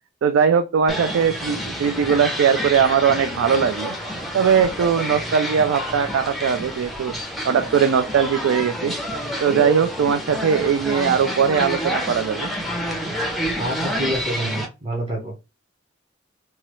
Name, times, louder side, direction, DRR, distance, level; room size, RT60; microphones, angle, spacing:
voice 1, 0.2-4.0 4.3-7.1 7.4-8.9 9.4-12.5, right 7 dB, 80° right, 8 dB, 0.3 m, -20 dB
sound 1, 0.9-14.7, equal, ahead, 0.5 m, -28 dB
voice 2, 13.3-15.4, right 1 dB, 25° right, -2 dB, 0.8 m, -28 dB
3.0 x 2.3 x 2.9 m, 0.27 s
head